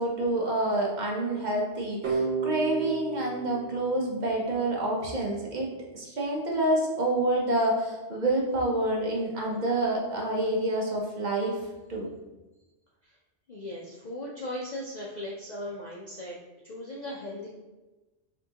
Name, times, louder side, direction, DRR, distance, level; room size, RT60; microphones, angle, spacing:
voice 1, 0.0-11.6 11.9-12.1, right 1 dB, 45° right, -2 dB, 0.8 m, -28 dB
sound 1, 2.0-4.8, right 5 dB, 60° right, 1.2 m, -32 dB
voice 2, 13.5-16.4 16.6-17.5, left 1 dB, 50° left, -4 dB, 0.6 m, -38 dB
5.7 x 2.9 x 2.8 m, 1.1 s
omnidirectional pair, 1.2 m